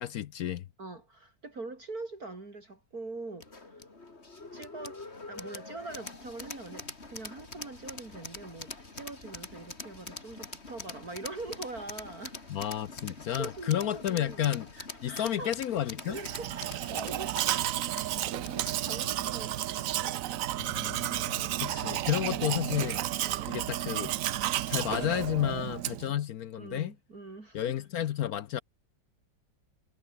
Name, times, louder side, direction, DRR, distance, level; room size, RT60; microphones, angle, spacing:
voice 1, 0.0-0.6 12.5-14.7 15.0-16.2 20.7-23.0 23.5-24.1 24.7-26.9 27.5-28.6, left 11 dB, 65° left, 1.0 m, -31 dB
voice 2, 0.8-3.8 4.5-12.6 13.1-14.5 14.8-15.6 16.1-20.5 21.4-21.7 22.3-22.5 23.2-23.5 26.6-27.6, right 3 dB, 50° right, 4.6 m, -44 dB
sound 1, 3.4-19.9, left 3 dB, 35° left, 3.2 m, -45 dB
Domestic sounds home sounds, 16.1-26.2, right 13 dB, 80° right, 0.7 m, -32 dB
omnidirectional pair, 2.1 m